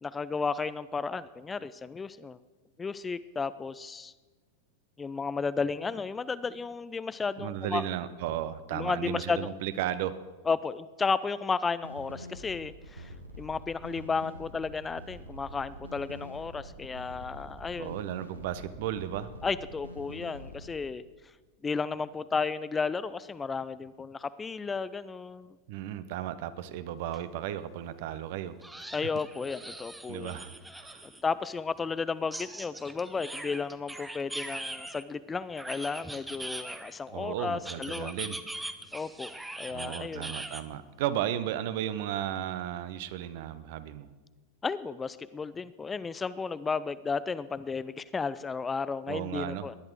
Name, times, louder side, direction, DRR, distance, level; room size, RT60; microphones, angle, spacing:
voice 1, 0.0-2.4 2.8-4.1 5.0-7.8 8.7-9.5 10.5-18.1 19.4-21.0 21.6-25.6 28.9-30.4 31.0-38.1 38.9-40.3 44.6-49.7, left 5 dB, 15° left, 16 dB, 0.4 m, -33 dB
voice 2, 7.4-10.2 17.8-19.3 25.7-28.6 30.1-31.1 37.1-38.4 39.7-44.1 49.1-49.7, right 11 dB, 50° right, 14 dB, 0.8 m, -34 dB
sound 1, 11.8-20.7, right 1 dB, 80° right, 1.5 m, -45 dB
sound 2, 27.1-27.2 27.6-27.7 28.6-31.2 32.3-35.0 35.6-37.1 37.6-40.6, right 1 dB, 5° right, 0.9 m, -41 dB
19.0 x 10.5 x 4.7 m, 1.3 s
figure-of-eight pair, 90°, 0 cm